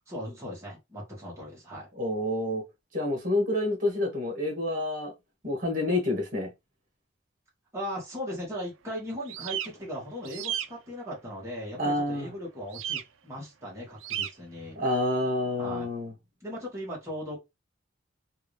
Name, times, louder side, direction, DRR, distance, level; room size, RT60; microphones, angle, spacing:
voice 1, 0.1-1.9 7.7-14.8 15.6-15.9 16.4-17.4, equal, 15° right, 1.7 m, -38 dB
voice 2, 2.0-2.6 2.9-5.1 5.4-6.5 11.8-12.3 14.7-16.1, left 1 dB, 45° right, 1.6 m, -28 dB
sound 1, 9.3-9.7 10.2-10.7 12.7-13.0 14.0-14.3, right 10 dB, 80° right, 0.4 m, -32 dB
3.6 x 2.6 x 3.2 m
head